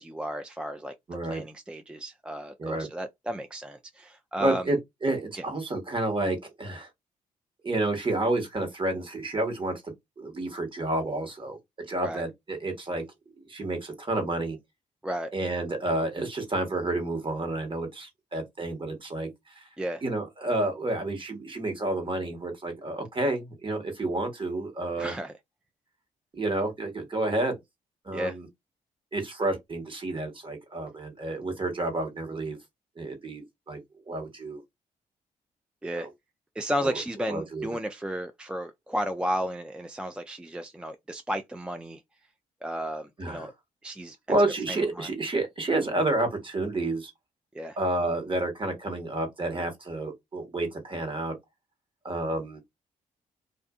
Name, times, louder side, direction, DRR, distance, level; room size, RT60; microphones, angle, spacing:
voice 1, 0.0-0.9 1.2-4.6 5.4-5.5 12.0-12.2 15.0-15.3 19.8-20.0 25.0-25.3 28.1-28.4 35.8-36.1 36.6-42.0 42.6-43.5 43.8-44.4 44.7-45.1 47.5-47.8, equal, 5° right, 0.4 m, -33 dB
voice 2, 1.1-1.4 2.6-2.9 4.4-6.9 7.6-11.6 11.9-13.0 13.5-14.6 15.3-19.7 20.0-25.1 26.3-27.6 28.0-28.5 29.1-32.6 33.0-33.8 34.1-34.6 35.9-36.1 36.8-37.0 37.3-37.7 43.2-43.5 44.3-47.1 47.8-51.3 52.0-52.6, right 2 dB, 35° right, 1.3 m, -30 dB
2.5 x 2.5 x 2.4 m
supercardioid pair, 60°, 14 cm